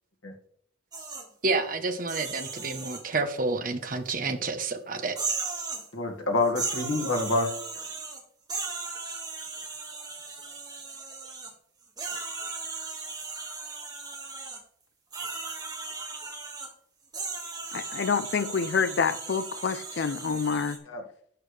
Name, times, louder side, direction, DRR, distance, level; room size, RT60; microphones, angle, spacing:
sound 1, 0.9-1.2 2.0-3.0 4.1-4.2 5.1-5.9 6.4-8.2 8.5-11.5 12.0-14.6 15.1-16.7 17.1-20.8, right 4 dB, 20° right, 1.8 m, -36 dB
voice 1, 1.4-5.1, right 3 dB, 45° right, 1.0 m, -29 dB
voice 2, 5.9-7.8 20.9-21.0, left 2 dB, 90° left, 2.0 m, -27 dB
voice 3, 17.7-20.8, left 5 dB, 60° left, 0.4 m, -27 dB
11.5 x 8.3 x 3.3 m
head